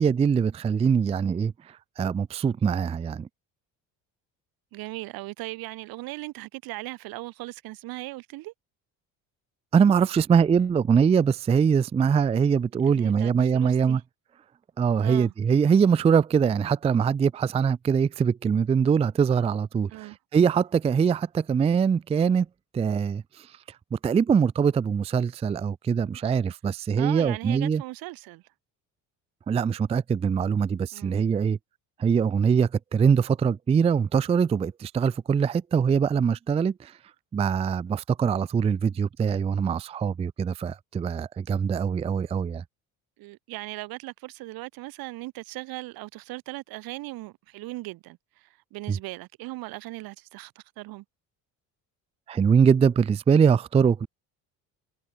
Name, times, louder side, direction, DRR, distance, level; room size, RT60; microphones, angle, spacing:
voice 1, 0.0-3.3 9.7-14.0 14.8-22.5 22.7-23.5 23.9-27.8 29.5-31.6 32.0-36.9 37.3-42.6 48.9-49.0 52.3-54.1, right 6 dB, 20° right, 0.4 m, -23 dB
voice 2, 4.7-8.5 12.9-14.0 15.0-15.3 19.9-20.2 27.0-28.4 30.9-31.3 43.2-51.0, right 20 dB, 80° right, 3.2 m, -38 dB
cardioid pair, 105°, 35 cm